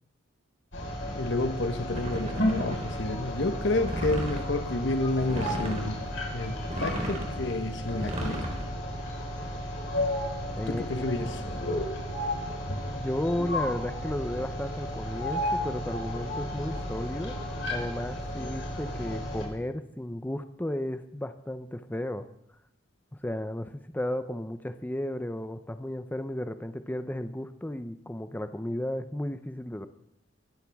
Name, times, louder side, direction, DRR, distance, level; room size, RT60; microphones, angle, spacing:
sound 1, 0.7-19.5, left 1 dB, 85° left, 4.6 m, -33 dB
voice 1, 1.1-6.0 6.3-8.4 10.7-11.4, left 2 dB, 70° left, 7 dB, 1.1 m, -30 dB
sound 2, 1.9-3.1 3.8-4.5 5.2-6.0 6.6-7.4 7.9-8.6, equal, 40° right, 3.6 m, -34 dB
voice 2, 10.6-11.1 12.9-17.4 17.7-22.3 23.1-29.9, left 1 dB, 10° left, 9 dB, 0.6 m, -34 dB
23.5 x 13.5 x 3.5 m, 0.75 s
head